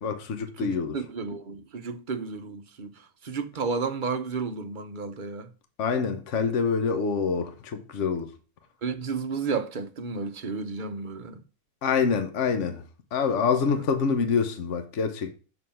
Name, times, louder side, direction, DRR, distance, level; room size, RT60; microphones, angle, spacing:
voice 1, 0.0-1.0 5.8-8.3 11.8-12.8 13.1-15.3, left 5 dB, 55° left, 1.3 m, -26 dB
voice 2, 0.6-5.5 8.8-11.4 13.7-13.8, right 4 dB, 40° right, 0.8 m, -32 dB
7.2 x 6.3 x 5.7 m
omnidirectional pair, 1.6 m